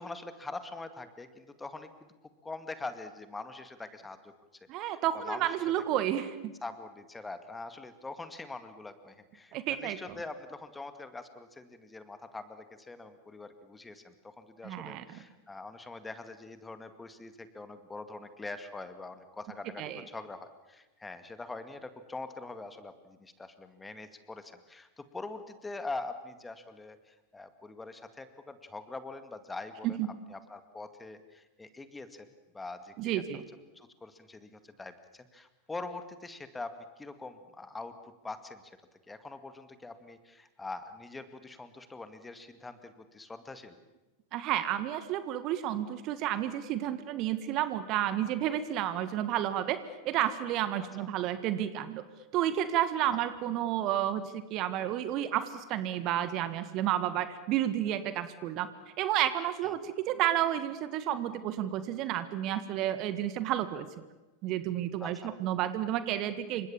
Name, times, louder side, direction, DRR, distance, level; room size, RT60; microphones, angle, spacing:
voice 1, 0.0-2.1 2.4-4.3 4.8-5.6 5.9-6.0 6.6-32.3 32.5-33.4 33.7-38.7 39.1-43.8 51.0-51.1 59.6-59.7 65.0-65.3, left 3 dB, 10° left, 10 dB, 2.0 m, -44 dB
voice 2, 4.7-6.5 9.5-10.0 14.6-15.2 19.8-20.0 29.8-30.1 33.0-33.4 44.3-52.0 52.3-58.7 59.0-63.9 64.4-66.7, right 12 dB, 40° right, 12 dB, 1.7 m, -31 dB
28.5 x 25.5 x 7.2 m, 1.1 s
figure-of-eight pair, 90°, 0 cm